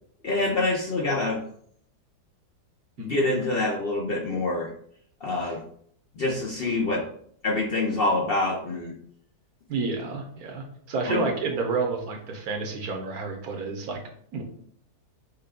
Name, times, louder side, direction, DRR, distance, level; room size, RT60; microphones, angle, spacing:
voice 1, 0.2-1.4 3.0-4.7 5.2-5.6 6.2-7.1 7.4-8.9 11.1-11.3, left 2 dB, 50° left, -2 dB, 0.8 m, -26 dB
voice 2, 9.7-14.0 14.3-14.4, right 4 dB, 65° right, 3 dB, 1.3 m, -30 dB
6.6 x 2.2 x 3.6 m, 0.62 s
omnidirectional pair, 1.7 m